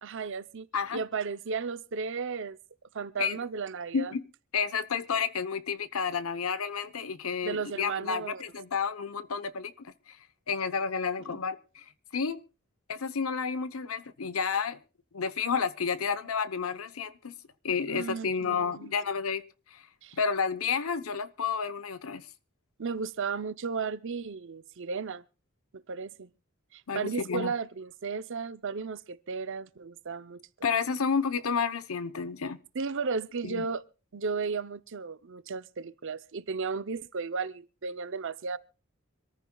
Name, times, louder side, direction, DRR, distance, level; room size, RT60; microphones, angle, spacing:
voice 1, 0.0-0.7 0.9-2.6 2.9-4.1 7.4-8.4 11.3-11.4 17.9-18.9 20.0-20.2 22.8-25.2 25.7-26.3 26.7-30.4 32.7-33.8 34.1-38.6, right 5 dB, 60° right, 0.7 m, -34 dB
voice 2, 4.5-10.2 10.5-11.8 12.1-12.4 12.9-14.8 15.1-17.3 17.6-19.4 19.7-19.8 20.2-22.3 26.9-27.5 30.6-32.6 33.4-33.7, left 6 dB, 90° left, 0.9 m, -31 dB
26.0 x 14.5 x 2.3 m
head